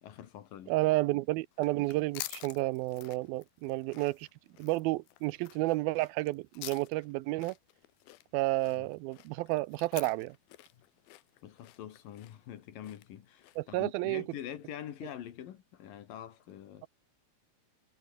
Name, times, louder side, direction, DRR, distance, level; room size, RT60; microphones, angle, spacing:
voice 1, 0.0-0.7 8.8-8.9 11.4-16.9, left 10 dB, 70° left, 3.3 m, -45 dB
voice 2, 0.7-4.3 4.6-7.6 8.3-10.4 13.6-14.3, right 19 dB, 85° right, 2.4 m, -31 dB
sound 1, 1.5-13.8, left 16 dB, 85° left, 2.8 m, -49 dB
omnidirectional pair, 4.3 m